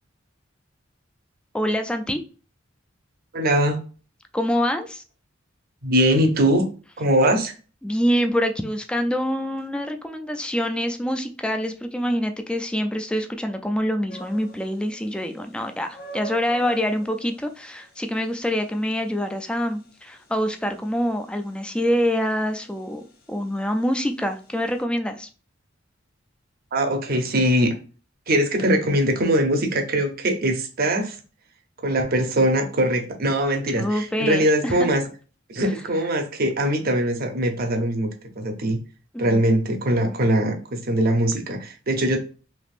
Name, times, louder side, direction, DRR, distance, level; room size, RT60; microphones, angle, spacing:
voice 1, 1.5-2.2 4.3-5.0 7.8-25.3 33.8-34.8 39.3-39.4, equal, 5° left, 0.3 m, -25 dB
voice 2, 3.3-3.8 5.8-6.7 7.0-7.5 26.7-27.7 28.3-31.2 31.8-35.0 35.5-38.1 38.4-38.8 39.2-42.2, right 1 dB, 50° right, 0.7 m, -21 dB
sound 1, 14.1-24.8, right 3 dB, 50° left, 0.6 m, -46 dB
3.4 x 2.9 x 2.5 m
head